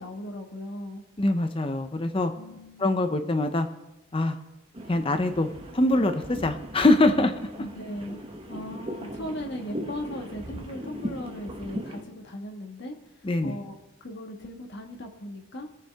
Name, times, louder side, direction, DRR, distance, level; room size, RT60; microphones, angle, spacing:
voice 1, 0.0-1.0 2.4-2.9 7.1-7.3 7.6-8.2 8.5-13.7 14.0-15.7, equal, 50° left, 2 dB, 1.6 m, -38 dB
voice 2, 1.2-2.3 2.8-3.7 4.1-4.4 4.9-7.3 13.2-13.6, left 2 dB, 25° left, 8 dB, 0.5 m, -23 dB
sound 1, 4.7-12.0, equal, 25° right, 1.2 m, -38 dB
20.5 x 7.1 x 3.5 m, 0.97 s
head